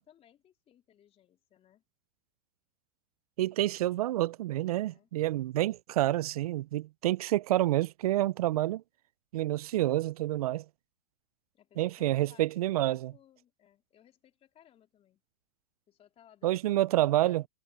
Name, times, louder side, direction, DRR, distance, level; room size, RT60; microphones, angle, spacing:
voice 1, 0.0-1.8 3.8-4.4 4.8-5.1 11.5-15.2 15.9-17.5, left 10 dB, 35° left, 3.9 m, -62 dB
voice 2, 3.4-8.8 9.3-10.6 11.8-13.1 16.4-17.4, right 15 dB, 85° right, 0.4 m, -28 dB
hypercardioid pair, 115°, 18 cm